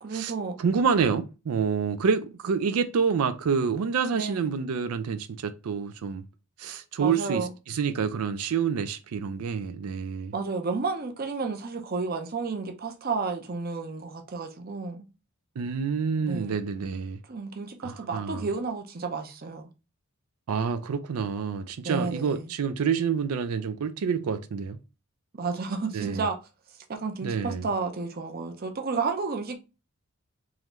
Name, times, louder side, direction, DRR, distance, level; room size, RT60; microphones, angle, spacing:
voice 1, 0.0-0.6 4.1-4.5 7.0-7.5 10.3-15.0 16.2-16.5 17.3-19.7 21.8-22.5 25.3-26.4 26.9-29.6, right 4 dB, 45° right, 0.6 m, -31 dB
voice 2, 0.6-6.3 6.6-10.3 15.6-17.2 17.8-18.5 20.5-24.8 25.9-26.2 27.2-27.7, right 6 dB, 85° right, 0.4 m, -28 dB
3.7 x 3.1 x 3.0 m
head